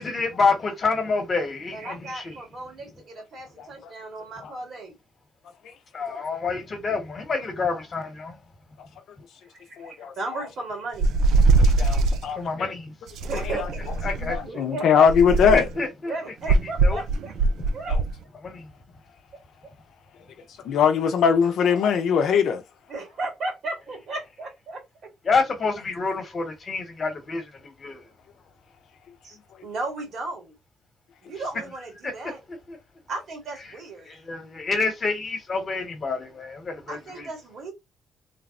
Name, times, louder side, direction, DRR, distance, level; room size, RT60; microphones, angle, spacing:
voice 1, 0.0-2.3 5.9-8.4 12.4-12.9 14.0-14.3 15.5-16.1 16.8-17.0 18.4-18.6 25.2-28.0 32.0-32.1 32.5-32.8 34.1-37.3, left 4 dB, 40° left, 1.1 m, -27 dB
voice 2, 1.7-4.9 9.5-11.1 11.9-12.2 13.2-13.9 14.5-15.1 16.0-17.3 17.7-17.9 22.9-24.8 29.2-29.4 29.6-30.5 31.2-32.4 33.1-34.1 36.9-37.7, right 2 dB, 65° right, 1.8 m, -35 dB
voice 3, 3.6-3.9 4.4-4.5 9.8-10.1 11.8-12.7 14.3-15.7 17.9-18.0 20.6-22.6, left 7 dB, 75° left, 0.6 m, -21 dB
sound 1, 11.0-12.2 13.2-14.4 15.1-15.8 16.5-18.1, right 3 dB, 80° right, 0.3 m, -21 dB
3.3 x 2.0 x 2.4 m
cardioid pair, 90°, 0 cm